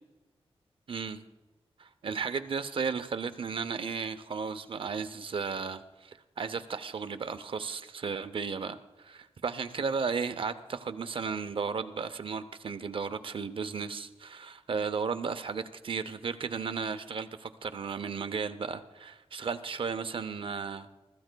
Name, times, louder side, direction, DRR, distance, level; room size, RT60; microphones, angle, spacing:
voice 1, 0.9-1.2 1.8-20.9, right 5 dB, 55° right, 10 dB, 0.6 m, -34 dB
23.0 x 14.0 x 2.2 m, 1.2 s
wide cardioid pair, 175°, 11 cm